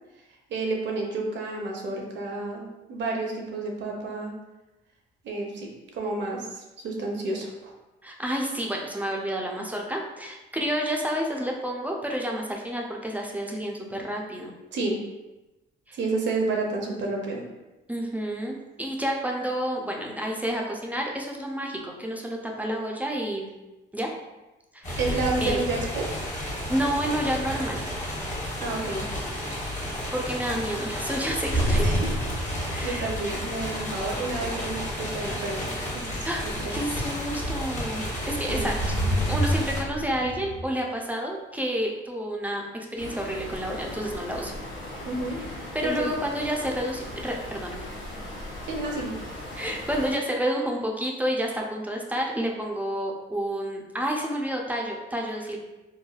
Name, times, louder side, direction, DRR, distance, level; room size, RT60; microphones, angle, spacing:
voice 1, 0.5-4.3 5.2-7.7 14.7-15.0 15.9-17.4 25.0-26.1 28.6-29.0 31.8-32.1 32.5-35.7 36.1-36.5 38.1-38.2 38.5-38.7 45.1-46.1 48.6-49.1, right 3 dB, 65° right, 0 dB, 0.6 m, -30 dB
voice 2, 8.0-14.5 15.9-16.0 17.9-23.5 23.9-24.1 24.7-25.6 26.7-27.8 30.1-32.0 32.7-33.1 36.2-36.4 36.7-38.7 39.3-44.5 44.9-45.0 45.7-47.8 49.5-55.6, equal, 10° right, 0 dB, 0.4 m, -30 dB
sound 1, 24.8-39.8, equal, 35° left, 1.0 m, -32 dB
sound 2, 31.4-33.8 38.3-40.6, right 1 dB, 55° left, 0.6 m, -27 dB
sound 3, 43.0-50.1, left 1 dB, 85° left, 1.0 m, -38 dB
3.1 x 2.2 x 2.3 m, 1.1 s
cardioid pair, 90°, 20 cm